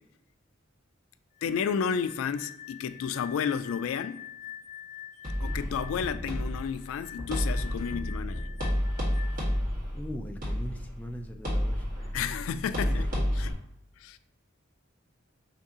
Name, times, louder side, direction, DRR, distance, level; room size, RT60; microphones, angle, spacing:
voice 1, 1.4-4.2 5.4-8.5 12.1-13.5 14.0-14.2, left 7 dB, 90° left, 0.3 m, -32 dB
sound 1, 1.4-9.6, left 11 dB, 40° left, 0.7 m, -46 dB
sound 2, 5.2-13.5, equal, 45° right, 1.4 m, -31 dB
voice 2, 9.9-11.8 12.8-13.2, equal, 10° left, 0.4 m, -40 dB
5.3 x 2.7 x 3.6 m
head